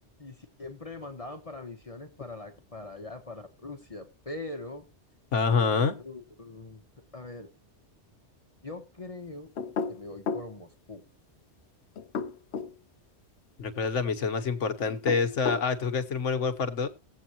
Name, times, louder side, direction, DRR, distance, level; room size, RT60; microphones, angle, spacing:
voice 1, 0.2-4.9 6.0-6.8 7.1-7.5 8.6-9.5 9.9-11.0, left 2 dB, 30° left, 1.1 m, -42 dB
voice 2, 5.3-6.0 13.6-16.9, left 5 dB, 90° left, 1.4 m, -27 dB
sound 1, 9.6-10.5 12.0-12.7 14.9-15.7, left 5 dB, 70° left, 1.0 m, -32 dB
18.0 x 8.1 x 2.9 m
omnidirectional pair, 1.2 m